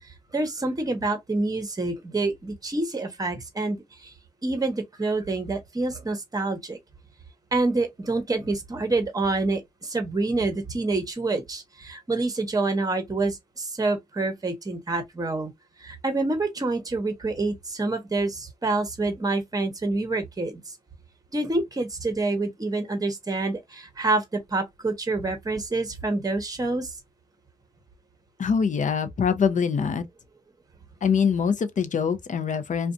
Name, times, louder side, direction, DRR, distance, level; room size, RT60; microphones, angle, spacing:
voice 1, 0.0-4.1 4.4-6.8 7.5-15.5 15.8-20.6 21.3-26.9, right 2 dB, 25° right, 0.9 m, -27 dB
voice 2, 28.4-30.0 31.0-32.9, left 6 dB, 55° left, 0.5 m, -24 dB
2.5 x 2.2 x 2.5 m
cardioid pair, 65°, 15 cm